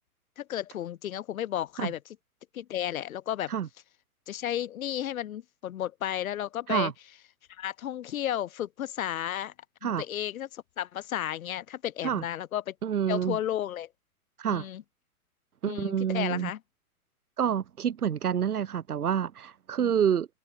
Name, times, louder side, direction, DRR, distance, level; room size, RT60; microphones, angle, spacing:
voice 1, 0.4-2.0 2.5-3.5 4.3-6.9 7.6-9.5 9.8-12.7 13.1-13.9 14.5-14.8 15.7-16.6 19.8-19.9, left 11 dB, 65° left, 3.6 m, -33 dB
voice 2, 12.8-13.4 14.4-14.7 15.6-16.5 17.4-20.3, right 8 dB, 75° right, 4.1 m, -28 dB
hypercardioid pair, 120°, 45 cm